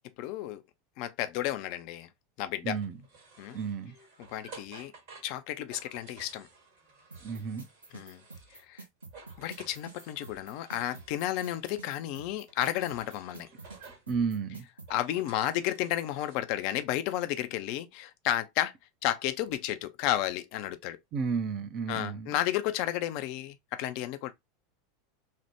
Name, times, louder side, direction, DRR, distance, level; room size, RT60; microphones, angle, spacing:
voice 1, 0.2-0.6 1.0-2.1 2.4-2.8 3.4-3.6 4.3-4.9 5.2-6.5 7.9-8.2 8.7-8.8 9.4-13.5 14.9-18.7 19.0-21.0 21.9-24.3, left 13 dB, 50° left, 0.4 m, -32 dB
voice 2, 2.6-3.0 3.5-3.9 7.2-7.6 14.1-14.7 21.1-22.4, right 5 dB, 40° right, 0.5 m, -32 dB
sound 1, 2.8-8.7 9.0-11.9 12.5-14.1 14.7-16.4, right 4 dB, 55° right, 1.4 m, -54 dB
sound 2, 7.1-14.9, right 3 dB, 80° right, 0.6 m, -48 dB
3.3 x 2.1 x 2.9 m
figure-of-eight pair, 80°, 0 cm